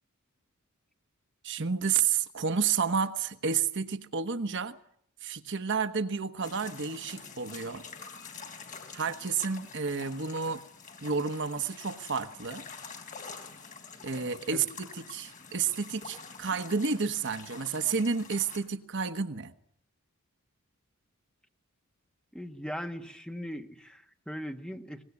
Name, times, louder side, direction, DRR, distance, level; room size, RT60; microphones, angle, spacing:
voice 1, 1.4-4.8 5.2-7.8 8.9-10.6 11.0-12.6 14.0-19.5, right 5 dB, 55° right, 9 dB, 1.2 m, -30 dB
sound 1, 6.4-18.6, left 5 dB, 35° left, 4.2 m, -47 dB
voice 2, 22.3-25.0, equal, 5° left, 5 dB, 1.5 m, -39 dB
23.5 x 20.5 x 9.7 m, 0.69 s
head